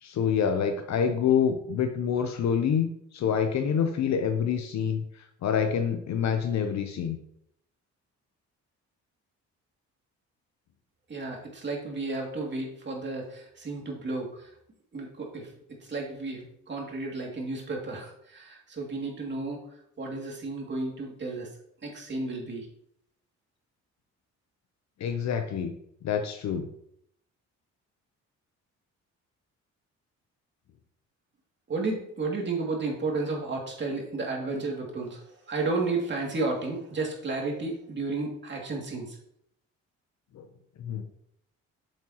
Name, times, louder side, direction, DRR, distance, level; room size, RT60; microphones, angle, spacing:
voice 1, 0.0-5.0 5.4-7.2 25.0-25.7 26.0-26.7 40.3-40.4 40.8-41.0, left 7 dB, 65° left, 6 dB, 0.8 m, -27 dB
voice 2, 11.1-14.5 14.9-19.7 20.0-21.5 21.8-22.7 31.7-39.2, right 3 dB, 40° right, -1 dB, 2.5 m, -32 dB
7.6 x 7.4 x 3.0 m, 0.73 s
cardioid pair, 90°, 30 cm